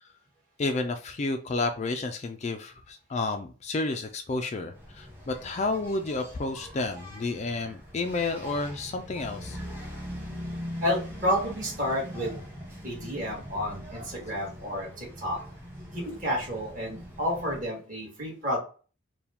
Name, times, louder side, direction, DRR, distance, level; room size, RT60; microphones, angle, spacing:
voice 1, 0.6-9.6, left 3 dB, 35° left, 6 dB, 0.4 m, -31 dB
Engine, 4.7-17.7, equal, 10° right, 1.2 m, -41 dB
voice 2, 10.8-12.4 12.8-15.4 15.9-18.6, equal, 40° right, -3 dB, 1.8 m, -30 dB
4.6 x 2.3 x 3.5 m, 0.37 s
head